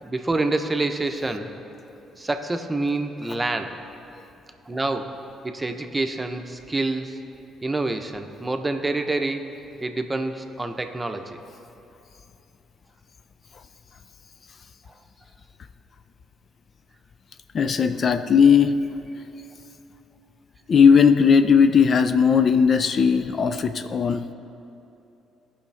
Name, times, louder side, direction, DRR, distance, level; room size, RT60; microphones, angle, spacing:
voice 1, 0.0-1.5 2.2-3.8 4.7-5.2 5.4-7.2 7.6-9.5 9.8-11.4, right 2 dB, 20° right, 6 dB, 0.9 m, -27 dB
voice 2, 17.5-18.8 20.7-24.2, left 6 dB, 50° left, 10 dB, 0.4 m, -17 dB
16.5 x 5.6 x 3.5 m, 2.9 s
hypercardioid pair, 50°, 0 cm